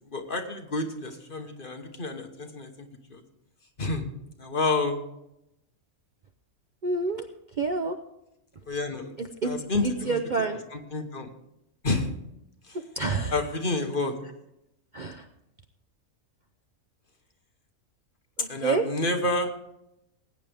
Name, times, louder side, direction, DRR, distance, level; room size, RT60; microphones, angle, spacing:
voice 1, 0.1-3.2 3.8-4.0 4.4-5.0 8.7-9.1 9.4-10.2 10.7-11.3 11.8-12.1 13.3-14.1 18.5-19.5, left 2 dB, 40° left, 4 dB, 1.3 m, -29 dB
voice 2, 6.8-7.2 7.6-7.9 9.2-9.5 9.8-10.6 13.0-13.3 14.9-15.2 18.4-18.8, right 3 dB, 45° right, 5 dB, 0.7 m, -28 dB
20.0 x 9.1 x 3.5 m, 0.83 s
omnidirectional pair, 1.5 m